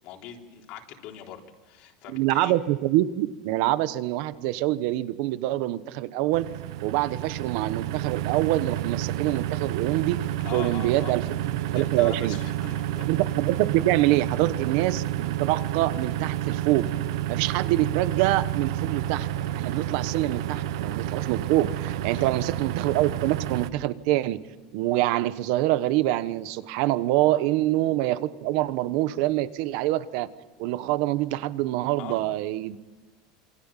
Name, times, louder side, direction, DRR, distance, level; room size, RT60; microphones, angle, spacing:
voice 1, 0.0-2.6 10.4-11.1 11.7-13.1 17.0-17.1 20.5-20.7 22.1-22.3 32.0-32.2, left 10 dB, 50° left, 2 dB, 3.6 m, -42 dB
voice 2, 2.1-6.5 6.8-10.2 10.5-12.3 13.1-16.9 17.3-19.3 19.5-24.4 24.7-30.3 30.6-32.8, right 15 dB, 60° right, 14 dB, 1.1 m, -25 dB
sound 1, 6.3-23.7, right 12 dB, 85° right, 1.0 m, -30 dB
27.5 x 25.0 x 7.5 m, 1.2 s
cardioid pair, 165°, 3 cm